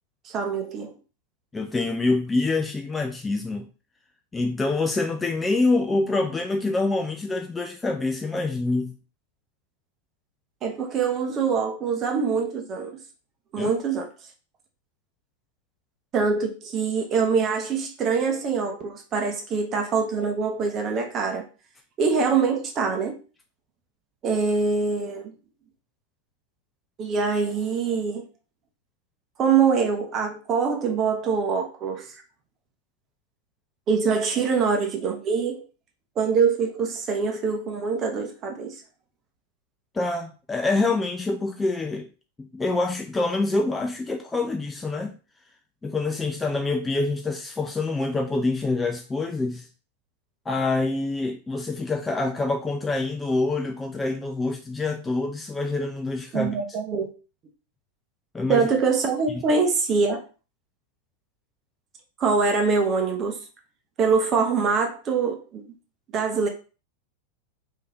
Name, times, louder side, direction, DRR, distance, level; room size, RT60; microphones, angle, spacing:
voice 1, 0.2-0.9 10.6-13.0 13.5-14.1 16.1-21.5 22.0-23.1 24.2-25.3 27.0-28.2 29.4-32.1 33.9-35.6 36.2-38.7 56.3-57.1 58.5-60.2 62.2-63.4 64.0-65.6 66.1-66.5, right 5 dB, 30° right, 0.9 m, -24 dB
voice 2, 1.5-3.7 4.3-8.9 13.6-13.7 39.9-42.0 42.4-45.1 45.8-49.7 50.5-56.5 58.3-58.7 59.3-59.4, left 3 dB, 10° left, 0.5 m, -26 dB
3.3 x 2.8 x 3.4 m
figure-of-eight pair, 90°, 0 cm